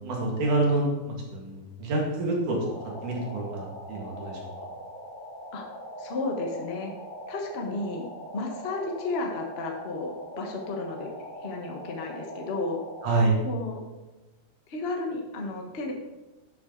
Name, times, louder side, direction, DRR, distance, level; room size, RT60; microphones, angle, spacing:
voice 1, 0.0-4.7 13.0-13.4, right 2 dB, 80° right, -1 dB, 3.5 m, -27 dB
sound 1, 2.6-13.2, equal, 15° left, 2.5 m, -41 dB
voice 2, 6.0-6.9 7.3-8.1 8.3-11.1 11.4-12.8 13.4-13.8 14.7-15.9, left 3 dB, 60° left, 2 dB, 0.6 m, -33 dB
11.5 x 7.8 x 3.9 m, 1.1 s
omnidirectional pair, 3.5 m